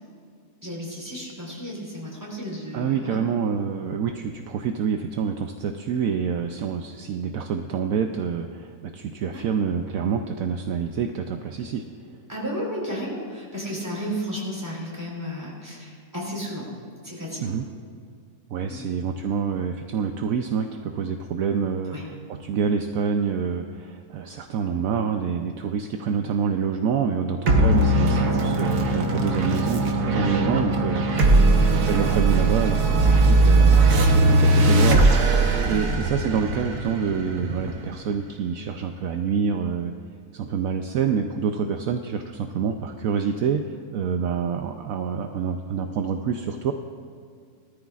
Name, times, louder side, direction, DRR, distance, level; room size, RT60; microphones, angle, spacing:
voice 1, 0.6-3.2 9.3-9.4 12.3-16.7 17.0-17.6 18.6-18.9 21.9-22.1 27.9-28.3 31.2-31.5 35.6-35.8, equal, 10° right, -4 dB, 3.9 m, -33 dB
voice 2, 2.7-11.8 17.4-17.6 18.5-22.1 22.4-31.4 31.9-33.8 34.3-39.9 40.3-46.7, right 6 dB, 70° right, 5 dB, 1.0 m, -27 dB
sound 1, 27.5-38.2, right 2 dB, 90° right, 1.6 m, -19 dB
19.5 x 13.5 x 2.4 m, 2.2 s
omnidirectional pair, 1.6 m